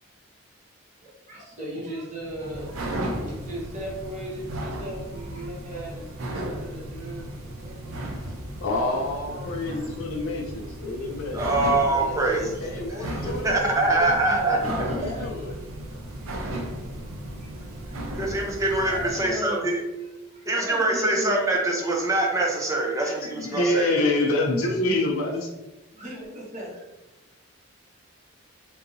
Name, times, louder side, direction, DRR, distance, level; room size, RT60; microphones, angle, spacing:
voice 1, 1.0-8.0 9.3-9.8 11.9-12.5 13.2-15.6 15.9-16.3 17.4-17.5 18.9-19.7 20.3-21.7 23.7-23.9 25.9-26.8, right 1 dB, 35° right, -6 dB, 1.2 m, -37 dB
sound 1, 2.2-19.4, right 1 dB, 85° right, 0.6 m, -35 dB
voice 2, 8.6-11.5 12.3-13.9 14.3-15.5 23.0-25.5, left 2 dB, 85° left, 0 dB, 0.5 m, -27 dB
voice 3, 11.3-12.4 13.4-14.6 18.1-19.8 20.5-23.9, right 2 dB, 15° right, -1 dB, 0.5 m, -24 dB
3.8 x 2.7 x 2.6 m, 1.0 s
head